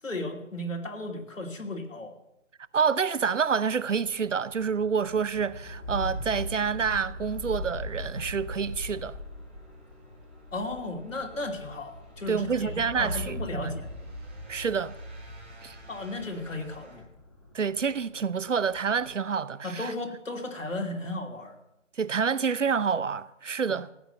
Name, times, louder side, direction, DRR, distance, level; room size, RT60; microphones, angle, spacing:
voice 1, 0.0-2.2 10.5-13.9 15.8-17.0 19.6-21.5 23.7-23.8, left 2 dB, 85° left, 2.9 m, -35 dB
voice 2, 2.7-9.1 12.3-13.7 14.5-14.9 15.6-15.8 17.5-19.9 22.0-23.9, right 6 dB, 75° right, 0.8 m, -28 dB
sound 1, 3.5-19.2, left 1 dB, 25° left, 1.6 m, -43 dB
sound 2, 5.8-17.0, equal, 5° right, 1.7 m, -43 dB
16.0 x 10.0 x 5.6 m
figure-of-eight pair, 175°, 38 cm